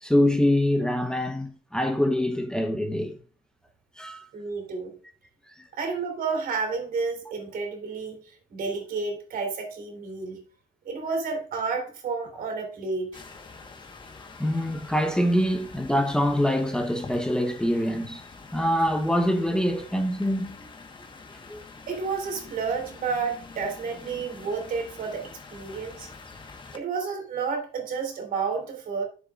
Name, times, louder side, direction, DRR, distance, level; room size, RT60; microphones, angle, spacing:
voice 1, 0.0-3.2 4.0-4.3 5.6-5.7 14.4-18.2 18.5-20.7 21.5-21.6, equal, 5° left, 0.9 m, -25 dB
voice 2, 4.3-4.9 5.7-10.4 10.8-13.2 21.9-26.1 26.7-29.0, right 5 dB, 60° right, 3.4 m, -31 dB
sound 1, 13.1-26.8, left 4 dB, 30° left, 1.3 m, -46 dB
10.5 x 7.0 x 2.5 m
cardioid pair, 110°, 17 cm